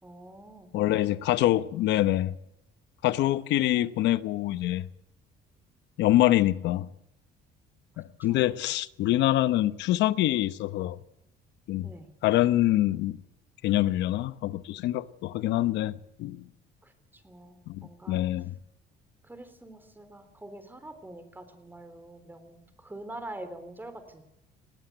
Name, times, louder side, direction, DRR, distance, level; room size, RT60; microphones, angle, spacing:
voice 1, 0.0-1.8 3.1-3.3 7.9-8.0 8.3-8.5 11.8-12.1 16.8-18.2 19.2-24.2, right 1 dB, 10° right, 3.6 m, -46 dB
voice 2, 0.7-2.3 3.0-4.8 6.0-6.9 8.0-11.0 11.7-11.9 12.2-13.2 13.6-16.4 17.7-18.5, left 14 dB, 80° left, 0.9 m, -25 dB
19.5 x 17.0 x 7.9 m
cardioid pair, 110°, 18 cm